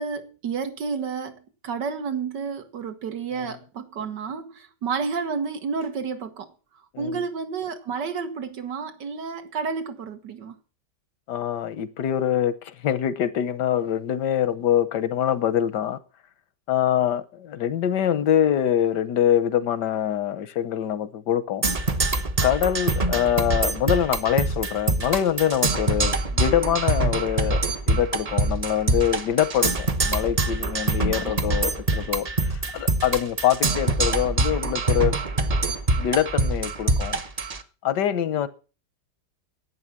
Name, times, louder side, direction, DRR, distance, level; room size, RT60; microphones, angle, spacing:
voice 1, 0.0-6.5 7.0-10.6 31.3-31.4, right 5 dB, 90° right, 7 dB, 2.1 m, -30 dB
voice 2, 11.3-16.0 16.7-21.6 22.4-35.1 36.0-37.2 37.8-38.5, left 10 dB, 80° left, 15 dB, 1.5 m, -24 dB
Percussion, 21.6-37.6, right 2 dB, 30° right, 0.7 m, -24 dB
11.0 x 8.6 x 7.4 m, 0.36 s
omnidirectional pair, 1.8 m